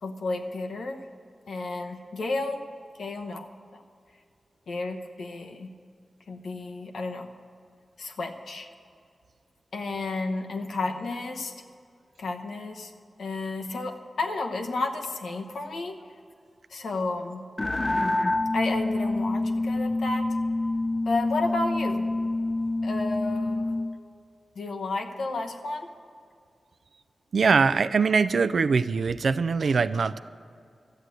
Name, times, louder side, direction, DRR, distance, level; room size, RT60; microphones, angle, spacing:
voice 1, 0.0-1.0 1.5-2.6 3.0-3.5 3.7-3.8 4.7-5.7 6.3-7.3 8.0-8.7 9.7-11.5 12.2-12.9 13.2-16.0 16.7-17.4 18.5-20.4 21.0-22.1 22.8-23.7 24.5-25.9, left 3 dB, 90° left, 3 dB, 1.0 m, -32 dB
sound 1, 17.6-23.9, left 2 dB, 30° left, 0.6 m, -27 dB
voice 2, 27.3-30.2, right 5 dB, 70° right, 14 dB, 0.4 m, -22 dB
13.0 x 8.2 x 7.8 m, 2.4 s
cardioid pair, 75°, 0 cm